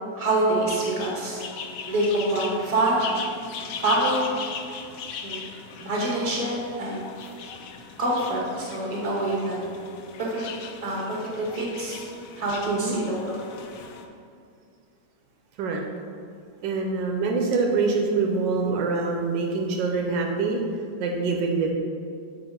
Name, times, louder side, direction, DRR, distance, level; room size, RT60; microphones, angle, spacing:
voice 1, 0.1-1.4 1.9-3.1 3.6-4.4 5.2-5.4 5.8-7.1 8.0-9.6 10.2-10.5 10.8-12.1 12.4-13.4, right 1 dB, 25° right, -4 dB, 1.0 m, -26 dB
sound 1, 0.6-14.1, left 6 dB, 90° left, 0.7 m, -39 dB
voice 2, 16.6-20.6 21.0-21.7, right 4 dB, 80° right, 1 dB, 1.2 m, -25 dB
6.9 x 4.1 x 3.6 m, 2.4 s
omnidirectional pair, 2.0 m